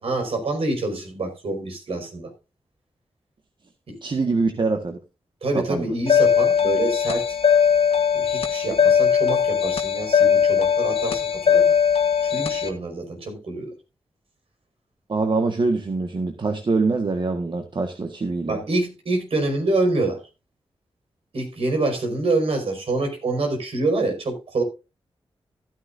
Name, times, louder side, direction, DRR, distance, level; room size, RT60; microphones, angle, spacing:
voice 1, 0.0-2.3 3.9-4.0 5.4-7.4 8.1-11.7 12.2-13.7 18.5-20.2 21.3-24.6, right 2 dB, 70° right, 5.1 m, -26 dB
voice 2, 4.0-5.0 5.5-5.9 15.1-18.6, right 3 dB, 50° right, 1.6 m, -24 dB
sound 1, 6.1-12.7, left 7 dB, 70° left, 1.4 m, -19 dB
15.0 x 10.0 x 2.6 m
cardioid pair, 55°, 10 cm